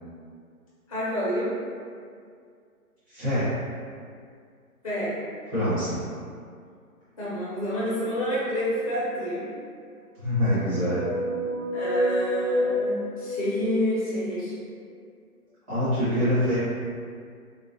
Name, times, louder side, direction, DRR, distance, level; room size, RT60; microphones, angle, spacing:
voice 1, 0.9-1.5 4.8-5.1 7.2-9.5 11.7-14.5, equal, 25° left, -9 dB, 0.4 m, -28 dB
voice 2, 3.1-3.5 5.5-6.0 10.2-11.0 15.7-16.6, equal, 10° right, -18 dB, 0.7 m, -24 dB
sound 1, 7.7-9.3 10.2-14.1, equal, 60° right, 1.0 m, -30 dB
3.8 x 2.0 x 2.5 m, 2.2 s
hypercardioid pair, 145°, 46 cm